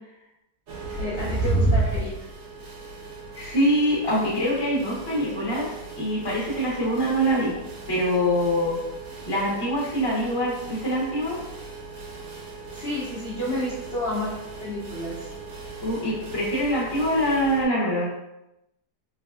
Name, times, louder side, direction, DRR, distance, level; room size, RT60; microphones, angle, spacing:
sound 1, 0.7-17.6, right 2 dB, 55° right, 0.8 m, -33 dB
voice 1, 1.0-2.1 12.7-14.3 14.6-15.2, left 1 dB, 45° left, -7 dB, 0.8 m, -30 dB
voice 2, 3.3-7.5 7.9-8.8 9.3-11.4 15.8-18.1, equal, 20° left, -6 dB, 0.9 m, -24 dB
4.1 x 3.1 x 2.3 m, 0.87 s
omnidirectional pair, 1.9 m